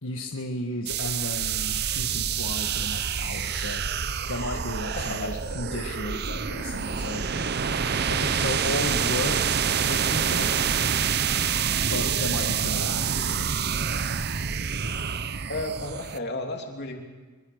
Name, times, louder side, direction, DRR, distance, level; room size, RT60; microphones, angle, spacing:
voice 1, 0.0-3.9 4.3-7.3 8.1-9.6 9.9-10.6 11.9-13.6, left 1 dB, 70° left, 2 dB, 1.6 m, -34 dB
sound 1, 0.9-16.2, right 7 dB, 50° right, 0.7 m, -27 dB
voice 2, 5.0-5.5 15.5-17.0, left 1 dB, 50° left, 2 dB, 3.0 m, -33 dB
25.0 x 23.5 x 6.5 m, 1.3 s
head